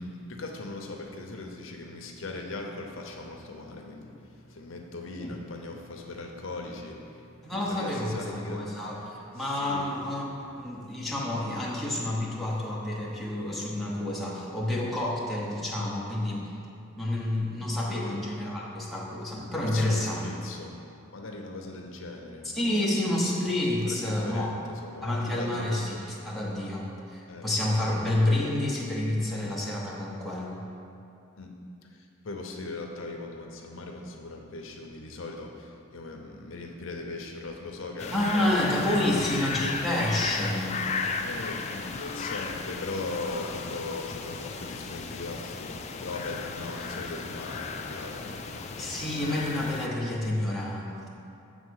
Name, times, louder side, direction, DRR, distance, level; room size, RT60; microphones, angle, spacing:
voice 1, 0.0-8.6 9.4-9.9 17.9-18.0 19.6-20.8 21.1-22.5 23.8-25.8 27.3-27.5 31.4-31.6 31.9-38.6 38.9-39.3 41.2-48.7, left 2 dB, 75° left, 1 dB, 0.7 m, -39 dB
voice 2, 7.4-10.3 10.6-16.5 16.9-20.2 22.5-24.5 25.0-30.6 38.1-40.7 48.8-51.1, left 1 dB, ahead, -6 dB, 1.0 m, -29 dB
sound 1, 38.0-49.9, left 4 dB, 35° left, 0.3 m, -35 dB
7.1 x 4.0 x 6.4 m, 2.6 s
head